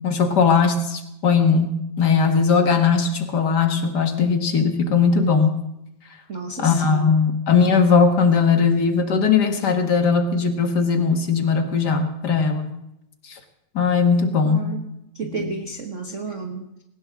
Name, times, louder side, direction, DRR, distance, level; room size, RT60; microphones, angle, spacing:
voice 1, 0.0-5.6 6.6-12.7 13.3-13.4 13.7-14.7 15.3-15.5, left 5 dB, 45° left, 5 dB, 1.7 m, -19 dB
voice 2, 6.3-7.2 14.4-16.7, right 4 dB, 90° right, 3 dB, 0.6 m, -32 dB
20.0 x 18.5 x 3.6 m, 0.84 s
omnidirectional pair, 3.3 m